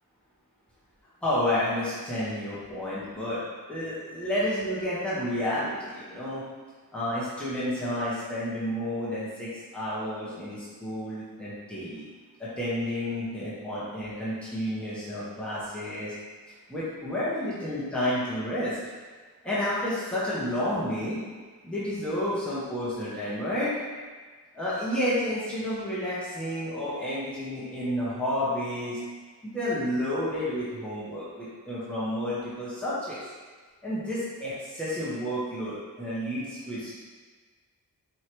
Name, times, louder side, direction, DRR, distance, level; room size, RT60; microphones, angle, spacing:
voice 1, 1.2-3.4 3.7-6.4 6.9-12.0 12.4-16.1 16.7-18.8 19.4-21.2 21.6-23.7 24.5-29.0 29.4-33.2 33.8-36.9, left 1 dB, 5° left, -10 dB, 1.2 m, -30 dB
4.7 x 3.1 x 3.0 m, 1.4 s
wide cardioid pair, 75°, 37 cm